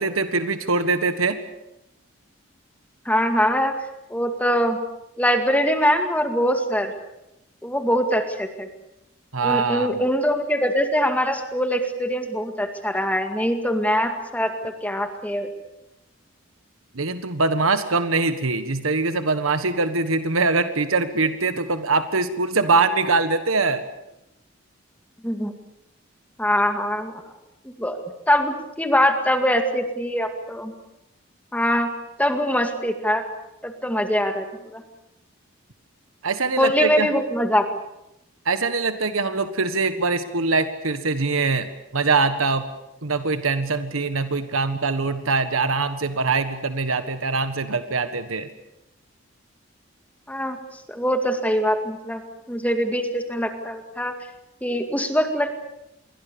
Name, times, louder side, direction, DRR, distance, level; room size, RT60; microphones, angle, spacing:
voice 1, 0.0-1.4 9.3-10.0 16.9-23.8 36.2-37.1 38.4-42.6 43.0-48.5, right 3 dB, 90° right, 10 dB, 1.5 m, -23 dB
voice 2, 3.1-3.8 4.1-4.8 5.2-6.9 7.6-8.7 9.4-15.5 25.2-25.5 26.4-27.1 27.6-28.0 28.3-30.7 31.5-31.9 32.2-33.2 33.6-34.8 36.6-37.7 50.3-52.2 52.5-54.1 54.6-55.5, equal, 5° left, 6 dB, 2.1 m, -23 dB
28.0 x 22.5 x 7.0 m, 0.88 s
head